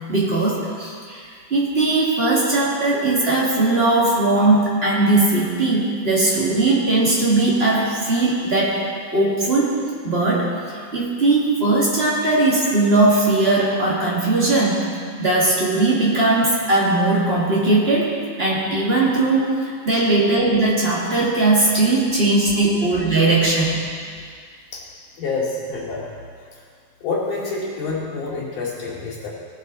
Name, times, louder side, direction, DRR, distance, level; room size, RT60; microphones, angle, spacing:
voice 1, 0.1-8.8 9.1-9.7 10.0-14.9 15.2-23.8, right 2 dB, 20° right, -5 dB, 2.0 m, -19 dB
voice 2, 25.2-26.1 26.5-26.6 27.0-29.3, left 3 dB, 85° left, -6 dB, 4.0 m, -27 dB
18.0 x 8.1 x 4.0 m, 2.1 s
omnidirectional pair, 3.6 m